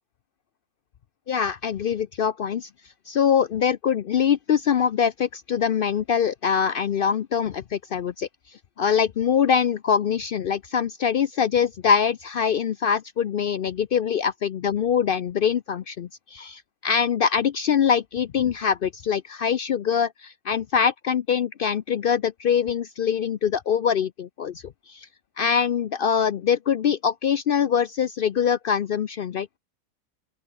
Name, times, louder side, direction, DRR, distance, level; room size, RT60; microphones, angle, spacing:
voice 1, 1.3-2.7 3.1-8.3 8.8-25.1 25.4-29.6, left 7 dB, 90° left, 0.4 m, -23 dB
open air
omnidirectional pair, 1.7 m